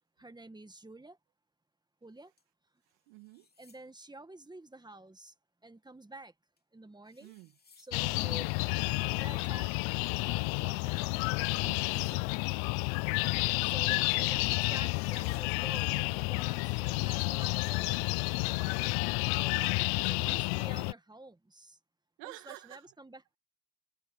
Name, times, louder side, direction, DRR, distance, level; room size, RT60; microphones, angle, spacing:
voice 1, 0.2-1.2 2.0-2.3 3.6-5.3 5.6-6.3 6.7-7.3 7.8-8.5 8.8-9.7 10.2-11.0 13.3-17.9 18.3-18.7 19.3-21.8 22.2-23.2, right 2 dB, 10° right, 1.7 m, -50 dB
sound 1, 2.4-2.5 2.9-3.8 6.6-6.7 7.0-8.0 10.8-10.9 11.2-12.3 14.3-14.4 14.9-15.5 18.1-18.2, left 4 dB, 25° left, 3.5 m, -63 dB
voice 2, 2.9-3.5 7.2-7.6 8.1-8.5 11.6-12.3 22.2-22.9, right 22 dB, 85° right, 2.3 m, -50 dB
sound 2, 7.9-20.9, left 29 dB, 80° left, 0.5 m, -30 dB
supercardioid pair, 90°, 38 cm